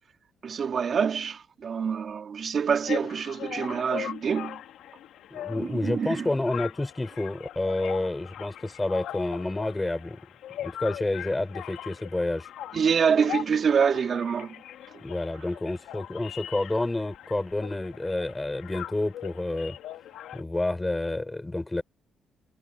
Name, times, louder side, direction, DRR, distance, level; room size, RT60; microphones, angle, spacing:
voice 1, 0.4-4.6 5.6-6.3 12.7-14.6, right 6 dB, 50° right, 3.0 m, -26 dB
sound 1, 2.9-20.4, left 11 dB, 80° left, 2.5 m, -40 dB
voice 2, 5.3-10.2 10.6-12.5 15.0-19.8 20.3-21.8, left 2 dB, 15° left, 5.0 m, -29 dB
cardioid pair, 90°, 0 cm